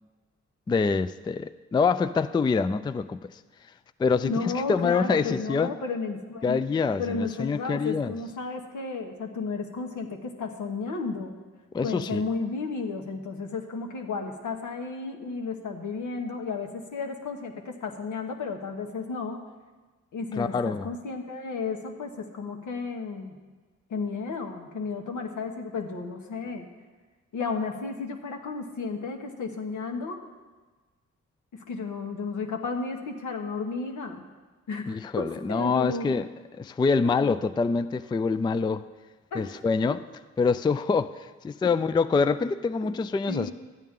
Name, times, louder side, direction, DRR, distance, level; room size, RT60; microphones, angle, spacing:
voice 1, 0.7-3.3 4.0-4.3 4.7-5.7 6.4-8.1 11.7-12.2 20.4-20.9 34.9-36.3 36.6-38.8 39.3-40.0 40.4-41.1 41.4-43.5, left 4 dB, 15° left, 0.3 m, -25 dB
voice 2, 4.2-6.7 7.0-11.4 11.8-19.4 20.1-23.4 23.9-26.7 27.3-30.2 31.5-34.2 34.7-36.2 37.0-37.3 39.3-39.5 42.8-43.0 43.3-43.5, left 4 dB, 75° left, 1.2 m, -33 dB
12.5 x 9.2 x 3.7 m
cardioid pair, 60°, 30 cm